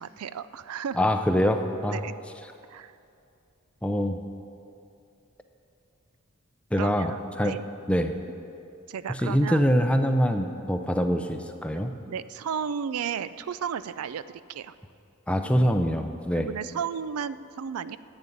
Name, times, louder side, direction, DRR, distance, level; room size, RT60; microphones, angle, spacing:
voice 1, 0.0-1.0 1.9-2.1 2.7-2.9 6.7-7.7 8.9-9.6 12.1-14.2 14.5-14.7 16.4-18.0, right 7 dB, 85° right, 15 dB, 0.4 m, -33 dB
voice 2, 0.9-2.0 3.8-4.2 6.7-7.6 7.9-8.2 9.1-11.9 15.3-16.5, equal, 5° left, 6 dB, 0.5 m, -24 dB
11.0 x 8.0 x 9.9 m, 2.6 s
head